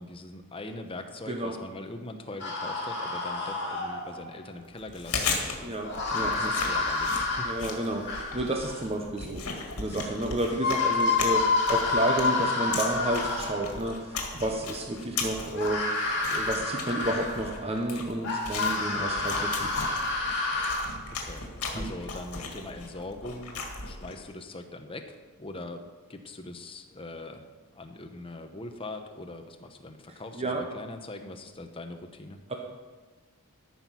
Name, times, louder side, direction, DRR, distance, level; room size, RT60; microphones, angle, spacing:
voice 1, 0.0-7.6 21.2-25.8 26.1-27.4 27.7-32.4, left 2 dB, 25° left, 5 dB, 0.9 m, -42 dB
sound 1, 2.4-4.3 5.8-8.8 10.1-10.2 10.5-13.8 15.5-17.6 18.2-20.8, left 3 dB, 55° left, 2.7 m, -29 dB
Chewing mastication, 4.8-24.3, left 4 dB, 80° left, 2.0 m, -37 dB
voice 2, 5.6-6.5 7.4-15.8 16.3-19.7 21.7-21.9 30.3-30.6 32.5-32.6, right 1 dB, 25° right, 2 dB, 0.9 m, -31 dB
13.5 x 6.0 x 5.7 m, 1.3 s
head